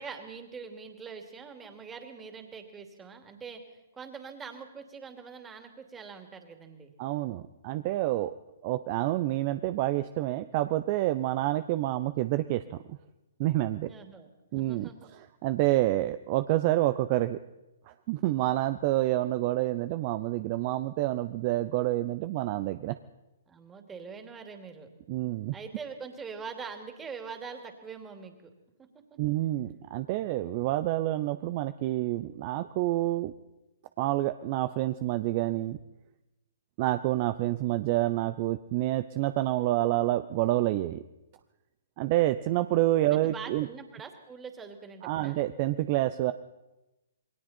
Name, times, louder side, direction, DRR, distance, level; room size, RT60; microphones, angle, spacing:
voice 1, 0.0-3.6 3.9-6.9 13.8-14.3 14.5-15.1 23.5-24.9 25.5-28.5 28.8-28.9 43.1-45.4, right 5 dB, 15° right, 5 dB, 2.8 m, -43 dB
voice 2, 7.0-8.3 8.6-13.0 13.4-13.9 14.5-14.9 15.2-17.4 17.9-23.0 25.1-25.5 29.2-33.3 34.0-35.8 36.8-41.0 42.0-43.7 45.0-46.3, right 16 dB, 40° right, 11 dB, 0.7 m, -28 dB
27.5 x 21.0 x 4.4 m, 1.0 s
hypercardioid pair, 130°, 0 cm